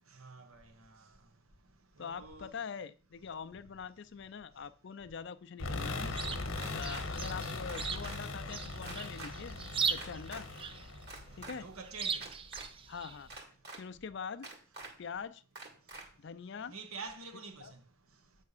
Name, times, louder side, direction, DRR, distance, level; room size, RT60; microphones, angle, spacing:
voice 1, 0.1-1.0 2.0-2.5 11.6-12.3 16.7-17.8, right 4 dB, 80° right, 1.2 m, -47 dB
voice 2, 2.0-9.6 9.9-10.5 11.4-11.7 12.9-13.3 13.8-14.5 15.0-15.4 16.2-16.7 17.6-17.7, left 6 dB, 55° left, 0.4 m, -44 dB
sound 1, 5.6-11.7, left 3 dB, 75° left, 1.1 m, -40 dB
Chirp tweet, 5.8-13.4, right 5 dB, 25° right, 0.4 m, -40 dB
sound 2, 6.5-7.0 7.7-8.2 8.8-9.3 10.0-10.4 11.0-11.5 12.1-12.7 13.3-13.8 14.4-14.9 15.5-16.0, right 3 dB, 50° right, 2.1 m, -46 dB
8.4 x 3.5 x 6.5 m
head